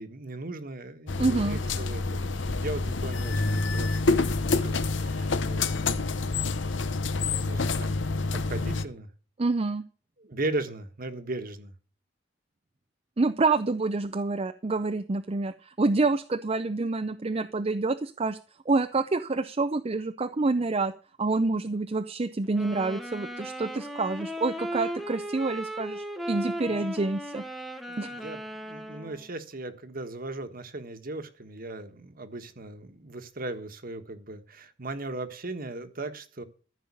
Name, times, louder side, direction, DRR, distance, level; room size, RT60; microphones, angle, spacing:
voice 1, 0.0-6.0 7.2-8.0 8.3-9.1 10.2-11.7 26.7-26.9 27.9-36.4, right 2 dB, 50° right, 9 dB, 1.4 m, -38 dB
sound 1, 1.1-8.8, left 3 dB, 70° left, 0.8 m, -27 dB
voice 2, 1.2-1.6 9.4-9.8 13.2-18.4 18.7-20.9 21.2-27.4 28.0-28.1, right 3 dB, 30° right, 8 dB, 0.5 m, -27 dB
sound 2, 22.5-29.3, equal, ahead, 1.0 m, -37 dB
14.0 x 5.5 x 8.4 m, 0.40 s
head